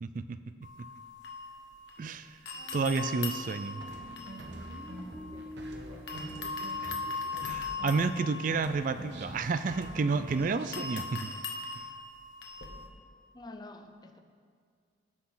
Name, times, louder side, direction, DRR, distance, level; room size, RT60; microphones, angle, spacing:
voice 1, 0.0-0.4 0.8-0.9 2.0-2.4 2.7-3.8 6.8-6.9 7.4-11.3, right 4 dB, 45° right, 11 dB, 0.4 m, -30 dB
sound 1, 0.6-2.1 2.5-5.7 6.1-12.9, left 4 dB, 70° left, 1.4 m, -40 dB
Human voice, 2.6-7.5, right 1 dB, 10° right, 1.8 m, -47 dB
sound 2, 3.8-8.2 8.5-10.9, right 1 dB, 70° right, 1.1 m, -46 dB
voice 2, 13.3-14.2, left 2 dB, 25° left, 6 dB, 0.6 m, -48 dB
18.0 x 6.2 x 3.9 m, 2.1 s
head